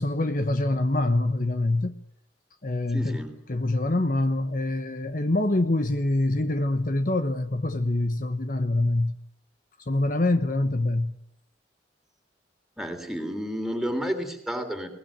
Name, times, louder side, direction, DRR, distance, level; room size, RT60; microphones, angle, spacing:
voice 1, 0.0-2.0 2.6-3.2 3.5-9.1 9.9-11.2, left 2 dB, 45° left, 1.0 m, -25 dB
voice 2, 2.9-3.4 12.8-14.9, equal, ahead, 3.4 m, -31 dB
21.5 x 20.0 x 8.9 m
head